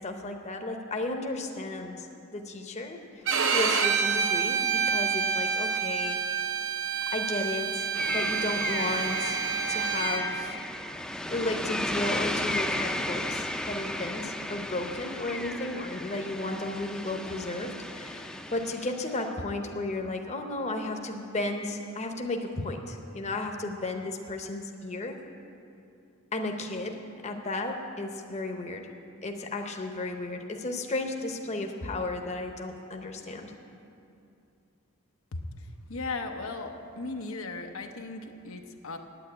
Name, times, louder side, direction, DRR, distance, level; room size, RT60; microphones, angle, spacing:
voice 1, 0.0-2.1 2.3-3.0 3.5-6.2 7.1-10.6 11.3-25.2 26.3-28.9 29.2-33.5, left 2 dB, 35° left, 4 dB, 0.8 m, -34 dB
Bowed string instrument, 3.3-10.2, right 6 dB, 65° right, 0.8 m, -28 dB
sound 1, 7.9-19.3, left 1 dB, 5° left, 0.5 m, -34 dB
voice 2, 35.9-39.0, left 3 dB, 85° left, 4 dB, 0.8 m, -37 dB
9.1 x 8.9 x 8.7 m, 2.6 s
head